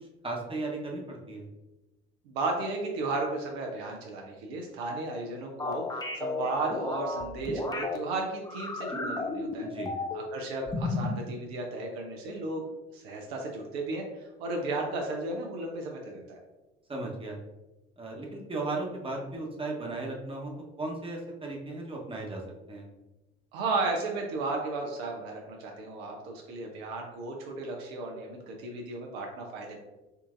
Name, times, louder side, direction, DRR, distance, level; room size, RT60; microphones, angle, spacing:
voice 1, 0.2-1.5 9.6-9.9 16.9-17.4 18.0-20.5 20.8-22.4 22.7-22.9, right 2 dB, 15° right, -2 dB, 1.0 m, -36 dB
voice 2, 2.3-9.7 10.1-14.0 14.4-16.4 23.5-29.8, right 3 dB, 75° right, 1 dB, 0.7 m, -34 dB
sound 1, 5.6-8.0 8.5-10.3 10.7-11.2, left 3 dB, 10° left, 0.5 m, -33 dB
5.3 x 2.6 x 2.5 m, 1.1 s
hypercardioid pair, 60°, 32 cm